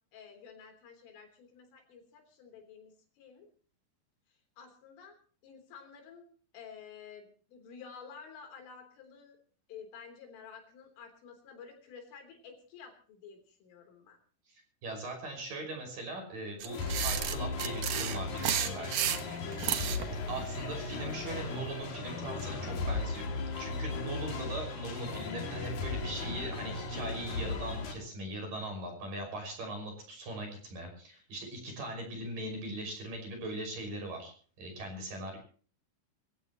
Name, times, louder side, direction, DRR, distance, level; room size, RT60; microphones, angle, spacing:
voice 1, 0.1-3.5 4.6-5.1 5.4-6.3 6.5-9.4 9.7-14.2 18.6-19.7, left 6 dB, 75° left, 5 dB, 6.0 m, -51 dB
voice 2, 14.5-19.1 20.3-23.3 23.6-35.4, right 1 dB, 45° right, 3 dB, 7.1 m, -40 dB
sound 1, 16.6-20.1, right 10 dB, 80° right, 1.8 m, -32 dB
sound 2, 16.7-27.9, left 3 dB, 45° left, 3.1 m, -36 dB
24.5 x 16.0 x 3.0 m, 0.43 s
omnidirectional pair, 5.7 m